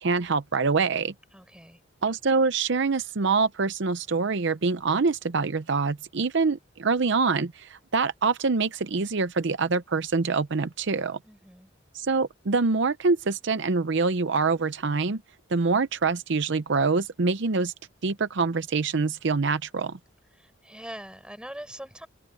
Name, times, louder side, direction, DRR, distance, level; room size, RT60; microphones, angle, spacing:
voice 1, 0.0-1.1 2.0-11.2 11.9-15.2 15.5-17.7 18.0-20.0, right 4 dB, 65° right, 0.7 m, -25 dB
voice 2, 1.3-1.8 11.2-11.7 20.3-22.1, right 1 dB, 5° right, 7.1 m, -42 dB
head